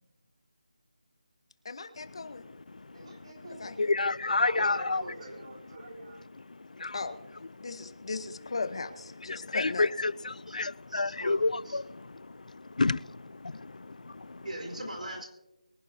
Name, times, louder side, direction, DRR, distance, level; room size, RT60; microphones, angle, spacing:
voice 1, 1.6-2.5 3.5-3.9 6.9-7.2 7.6-10.0, left 4 dB, 45° left, 12 dB, 1.0 m, -37 dB
voice 2, 2.9-3.8 4.8-6.2, right 2 dB, 45° right, -2 dB, 3.7 m, -47 dB
voice 3, 3.8-5.0 6.7-7.0 9.3-14.4, left 3 dB, 80° left, 22 dB, 0.4 m, -30 dB
voice 4, 4.4-5.4 10.5-10.6 10.9-11.8 14.4-15.3, right 1 dB, 80° right, 2 dB, 4.7 m, -41 dB
23.5 x 11.0 x 2.7 m, 0.95 s
figure-of-eight pair, 175°, 4 cm